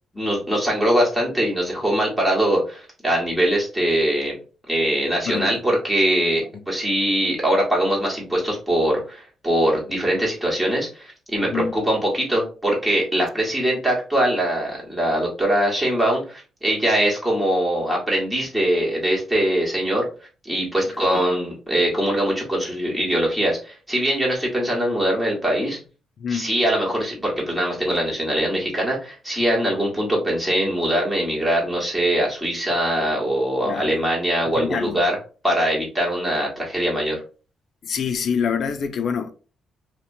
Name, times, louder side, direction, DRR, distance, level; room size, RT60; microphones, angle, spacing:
voice 1, 0.1-4.4 4.7-20.1 20.4-25.8 26.3-35.2 35.4-37.2, right 1 dB, 5° right, 1.3 m, -22 dB
voice 2, 5.3-5.6 11.4-11.7 20.8-21.2 26.2-26.5 33.6-34.0 34.5-35.0 37.8-39.3, left 7 dB, 60° left, 0.4 m, -26 dB
2.8 x 2.1 x 2.6 m
cardioid pair, 90°, 0 cm